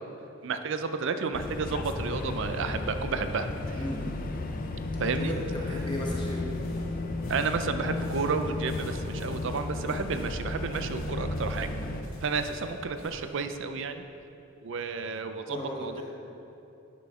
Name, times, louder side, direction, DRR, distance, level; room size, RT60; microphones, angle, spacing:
voice 1, 0.4-3.8 5.0-5.3 7.3-11.7 12.2-14.1 14.6-16.0, right 4 dB, 60° right, 9 dB, 0.5 m, -31 dB
sound 1, 1.3-12.0, left 2 dB, 45° left, 0.5 m, -34 dB
voice 2, 3.7-4.1 5.2-6.5 15.5-16.0, left 1 dB, 25° left, -4 dB, 1.1 m, -36 dB
sound 2, 5.6-13.3, left 1 dB, 85° left, 1.9 m, -49 dB
9.6 x 6.2 x 3.7 m, 2.9 s
head